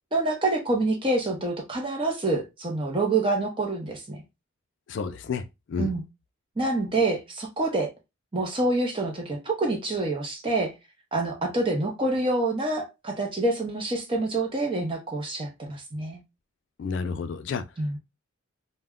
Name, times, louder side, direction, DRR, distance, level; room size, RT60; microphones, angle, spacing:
voice 1, 0.1-4.2 5.8-6.0 6.6-7.9 8.3-10.7 11.1-16.2 17.8-18.0, right 2 dB, 25° right, 0.6 m, -27 dB
voice 2, 4.9-5.4 5.7-5.9 16.8-17.6, left 5 dB, 60° left, 0.3 m, -30 dB
2.2 x 2.0 x 3.4 m
head